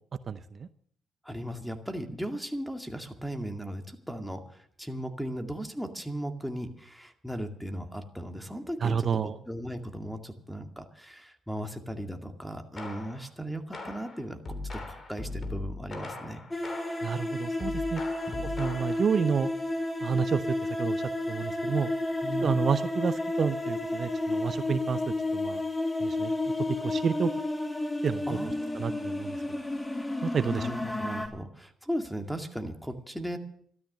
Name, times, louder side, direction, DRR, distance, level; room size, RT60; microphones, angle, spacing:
voice 1, 0.3-0.7 8.8-9.3 17.0-18.0 18.4-19.5 20.0-21.9 22.4-25.6 26.0-26.3 26.8-27.3 28.0-28.4 28.7-29.4 30.2-30.7, right 6 dB, 50° right, 12 dB, 0.6 m, -30 dB
voice 2, 1.2-14.4 14.7-16.4 18.3-18.5 22.2-22.6 28.3-29.0 30.3-33.4, equal, ahead, 6 dB, 2.1 m, -37 dB
sound 1, 12.8-13.3 13.7-17.2 17.6-19.1, left 2 dB, 35° left, 3.4 m, -39 dB
sound 2, 16.5-31.3, left 2 dB, 15° left, 2.4 m, -31 dB
13.5 x 12.5 x 6.7 m, 0.63 s
cardioid pair, 75°, 0 cm